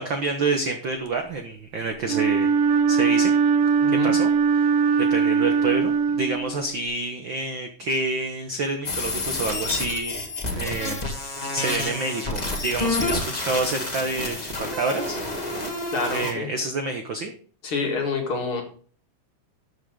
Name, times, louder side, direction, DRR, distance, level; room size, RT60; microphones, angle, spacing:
voice 1, 0.0-2.5 2.9-3.3 4.0-10.2 10.5-15.2 16.1-17.3, right 3 dB, 70° right, 5 dB, 1.1 m, -28 dB
Wind instrument woodwind instrument, 2.1-6.8, right 6 dB, 90° right, 2.7 m, -21 dB
voice 2, 3.8-4.1 15.9-16.5 17.6-18.6, left 4 dB, 45° left, 2 dB, 2.4 m, -27 dB
sound 1, 8.8-16.3, left 2 dB, 20° left, 1.0 m, -29 dB
13.0 x 7.4 x 3.7 m, 0.43 s
omnidirectional pair, 3.8 m